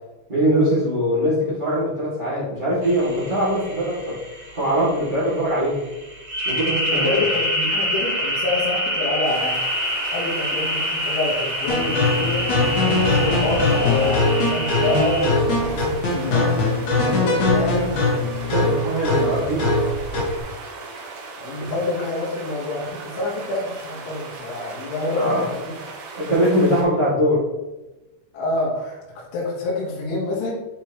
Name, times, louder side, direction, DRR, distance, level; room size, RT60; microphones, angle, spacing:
voice 1, 0.3-4.2 4.5-5.8 6.4-7.2 18.4-19.7 21.6-21.7 23.1-23.2 25.1-25.4 26.2-27.4, equal, 35° right, -12 dB, 0.7 m, -22 dB
sound 1, 2.8-15.3, equal, 90° right, 0.8 m, -26 dB
voice 2, 6.9-9.6 10.0-16.6 17.0-18.0 21.4-25.7 26.5-26.7 28.3-30.6, left 2 dB, 80° left, -5 dB, 3.9 m, -27 dB
sound 2, 9.2-26.8, right 4 dB, 70° right, 3.2 m, -38 dB
sound 3, 11.7-20.4, left 2 dB, 55° left, 2.4 m, -21 dB
9.4 x 4.6 x 3.1 m, 1.1 s
omnidirectional pair, 5.4 m